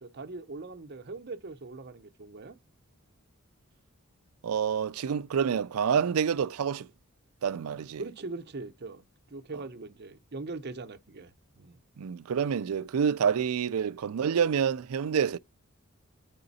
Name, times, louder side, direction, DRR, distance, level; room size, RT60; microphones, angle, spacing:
voice 1, 0.0-2.6 8.0-9.0 9.3-11.8, right 3 dB, 45° right, 0.8 m, -41 dB
voice 2, 4.4-6.9 7.4-8.0 12.0-15.4, right 7 dB, 80° right, 0.4 m, -27 dB
9.6 x 3.8 x 4.1 m
head